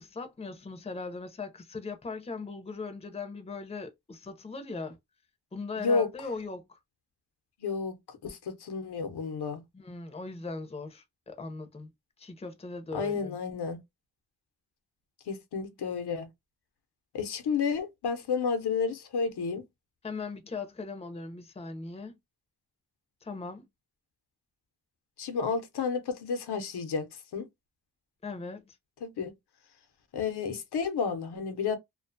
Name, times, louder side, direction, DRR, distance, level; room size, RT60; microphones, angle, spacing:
voice 1, 0.0-5.0 5.5-6.8 9.7-11.9 12.2-13.4 20.0-22.1 23.2-23.7 28.2-28.8, left 4 dB, 15° left, 0.5 m, -39 dB
voice 2, 5.8-6.1 7.6-9.6 12.9-13.8 15.3-16.3 17.1-19.6 25.2-27.1 27.3-27.5 29.0-29.3 30.1-31.8, left 5 dB, 90° left, 0.7 m, -31 dB
2.4 x 2.2 x 2.5 m
wide cardioid pair, 150°, 38 cm